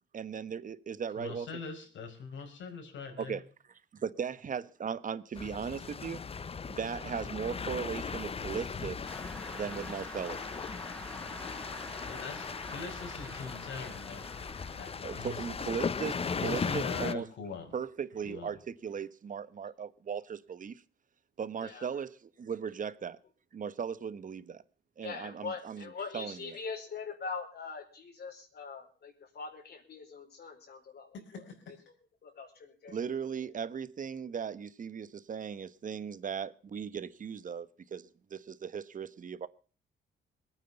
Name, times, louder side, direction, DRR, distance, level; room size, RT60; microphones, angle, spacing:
voice 1, 0.1-1.5 3.2-3.4 4.0-6.2 6.7-9.1 9.5-10.6 15.0-17.3 17.7-20.8 21.4-23.2 23.5-24.6 25.0-25.8 26.1-26.3 32.9-39.5, right 7 dB, 40° right, 1.1 m, -37 dB
voice 2, 1.2-3.4 12.0-15.4 16.3-17.7 18.2-18.5 31.1-31.7, left 5 dB, 70° left, 5.0 m, -43 dB
sound 1, 5.4-17.1, left 5 dB, 30° left, 0.7 m, -38 dB
sound 2, 9.0-15.7, equal, 5° left, 3.6 m, -48 dB
voice 3, 21.6-22.0 25.0-31.8 32.2-33.0 33.4-33.5, left 5 dB, 55° left, 4.3 m, -43 dB
20.5 x 9.3 x 6.9 m
cardioid pair, 90°, 20 cm